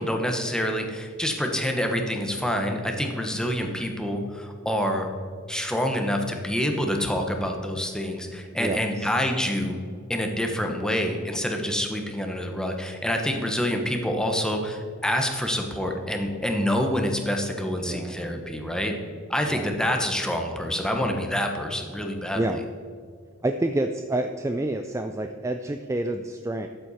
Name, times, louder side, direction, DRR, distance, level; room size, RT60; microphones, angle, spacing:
voice 1, 0.0-5.1 5.5-9.7 10.1-18.9 19.3-22.6, equal, 5° left, 3 dB, 1.1 m, -27 dB
voice 2, 8.5-9.1 17.8-18.4 19.5-19.7 22.3-22.6 23.4-26.7, right 1 dB, 15° right, 7 dB, 0.3 m, -28 dB
13.0 x 7.8 x 4.2 m, 2.2 s
head